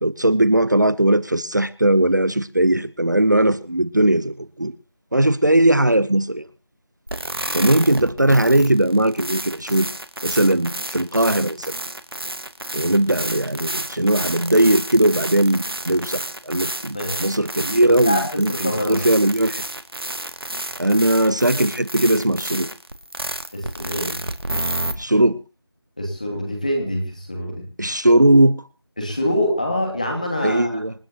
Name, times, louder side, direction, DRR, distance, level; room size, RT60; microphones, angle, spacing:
voice 1, 0.0-4.7 5.1-6.4 7.5-9.9 10.2-11.8 12.7-19.6 20.8-22.7 25.0-25.4 27.8-28.6 30.4-30.9, right 1 dB, 45° right, 18 dB, 0.7 m, -19 dB
sound 1, 7.1-24.9, right 1 dB, 70° right, 2.1 m, -30 dB
voice 2, 16.9-17.3 17.9-19.0 23.5-24.2 26.0-27.6 29.0-30.7, left 1 dB, 20° left, 1 dB, 2.7 m, -25 dB
27.5 x 9.5 x 2.9 m, 0.29 s
figure-of-eight pair, 180°, 13 cm